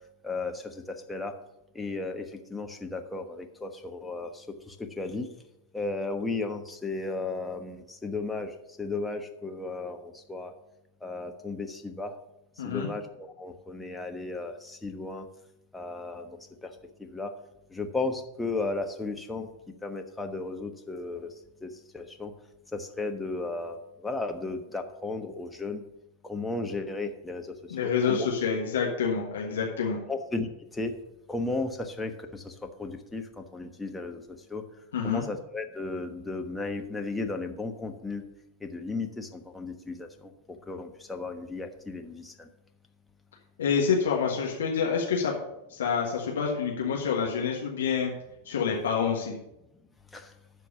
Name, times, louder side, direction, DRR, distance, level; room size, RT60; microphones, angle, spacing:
voice 1, 0.2-1.3 1.7-5.3 5.7-8.5 8.8-10.5 11.0-12.1 12.6-15.3 15.7-16.7 17.0-17.3 17.7-19.5 19.8-21.3 21.6-22.3 22.7-25.8 26.2-28.3 30.1-30.5 30.7-30.9 31.3-32.5 32.8-34.2 34.5-34.6 35.0-38.2 38.6-40.3 40.7-42.5 50.1-50.3, left 3 dB, 5° left, 4 dB, 1.2 m, -34 dB
voice 2, 12.6-12.9 27.7-30.0 34.9-35.2 43.6-45.3 45.7-48.1 48.4-49.3, left 6 dB, 65° left, -1 dB, 1.5 m, -27 dB
12.5 x 4.6 x 6.9 m, 0.87 s
figure-of-eight pair, 90°, 0 cm